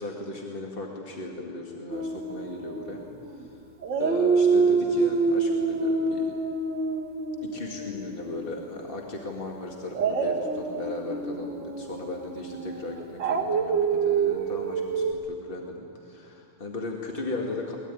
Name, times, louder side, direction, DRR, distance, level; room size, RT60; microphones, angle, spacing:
voice 1, 0.0-3.1 3.4-3.5 4.0-6.3 7.4-17.8, left 2 dB, 25° left, 0 dB, 1.4 m, -37 dB
Dog, 1.9-3.4 3.8-8.9 9.9-15.1, right 4 dB, 40° right, 1.9 m, -27 dB
22.5 x 21.0 x 9.7 m, 2.7 s
omnidirectional pair, 3.6 m